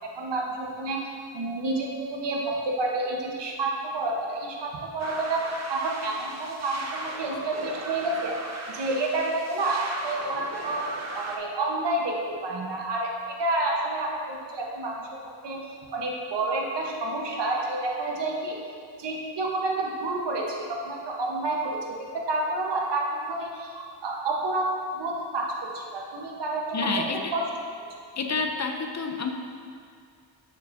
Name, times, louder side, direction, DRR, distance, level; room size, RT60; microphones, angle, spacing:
voice 1, 0.0-8.3 8.7-10.9 11.1-13.1 13.4-15.7 15.9-18.6 19.0-27.1 27.3-27.5, right 2 dB, 60° right, -1 dB, 1.0 m, -29 dB
sound 1, 5.0-11.4, right 2 dB, 35° right, 0.6 m, -38 dB
voice 2, 26.7-27.3 28.2-29.3, left 4 dB, 35° left, 4 dB, 0.5 m, -28 dB
6.7 x 6.7 x 2.6 m, 2.3 s
wide cardioid pair, 120°, 47 cm